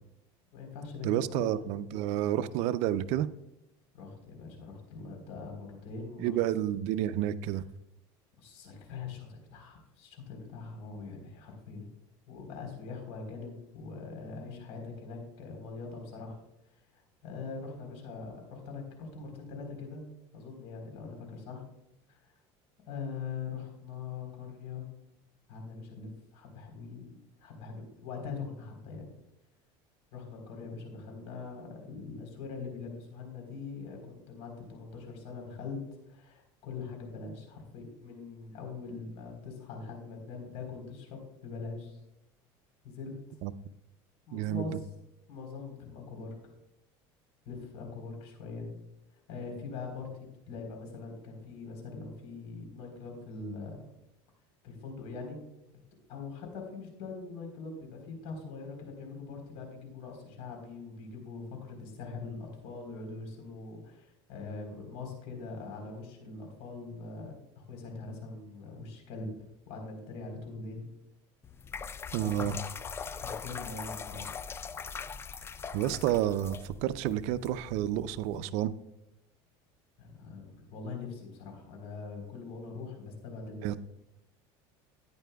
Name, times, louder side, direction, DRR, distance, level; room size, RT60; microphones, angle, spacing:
voice 1, 0.5-1.6 3.9-6.4 8.4-11.9 12.3-16.4 17.2-20.0 20.3-21.7 22.1-22.4 22.9-24.9 25.5-29.1 30.1-35.8 36.1-42.0 42.8-43.1 44.3-44.8 45.3-46.3 47.5-48.7 49.3-50.1 50.5-53.8 54.6-55.4 56.1-69.3 69.7-70.8 72.2-72.5 73.2-74.3 80.0-83.8, left 4 dB, 70° left, 2 dB, 3.9 m, -42 dB
voice 2, 1.0-3.3 6.2-7.6 43.4-43.5 44.3-44.8 72.1-72.6 75.7-78.7 83.6-83.8, right 12 dB, 70° right, 14 dB, 0.5 m, -30 dB
sound 1, 71.4-78.4, left 6 dB, 20° left, 0.3 m, -42 dB
14.5 x 9.8 x 2.3 m, 0.87 s
supercardioid pair, 125°, 12 cm